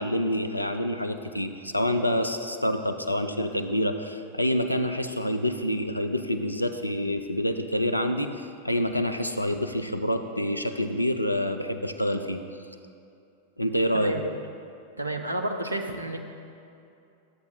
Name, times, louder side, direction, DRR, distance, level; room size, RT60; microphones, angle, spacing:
voice 1, 0.0-12.4 13.6-14.3, equal, 85° left, 7 dB, 0.4 m, -27 dB
voice 2, 13.9-14.3 15.0-16.2, right 1 dB, 80° right, 4 dB, 0.7 m, -30 dB
13.0 x 8.1 x 2.7 m, 2.6 s
figure-of-eight pair, 90°, 0 cm